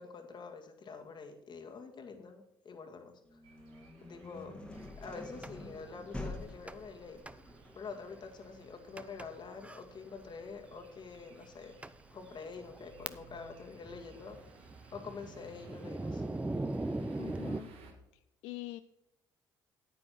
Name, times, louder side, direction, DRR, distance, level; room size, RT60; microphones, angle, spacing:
voice 1, 0.0-3.4 4.0-4.6 5.0-7.2 7.8-11.8 12.1-14.4 14.9-16.2, left 4 dB, 50° left, 4 dB, 2.0 m, -46 dB
sound 1, 3.3-13.0, left 2 dB, 10° left, 1.9 m, -48 dB
sound 2, 3.4-17.9, right 4 dB, 75° right, 1.9 m, -59 dB
Thunder, 5.4-5.5 6.7-7.0 7.3-7.4 8.0-8.1 9.0-9.3 9.6-9.8 10.7-10.8 11.4-11.5 11.8-11.9 12.5-13.5 13.8-17.6, right 2 dB, 15° right, 0.6 m, -39 dB
voice 2, 17.2-17.7 18.4-18.8, left 17 dB, 80° left, 12 dB, 0.4 m, -43 dB
9.5 x 8.6 x 4.5 m, 0.90 s
supercardioid pair, 60°, 10 cm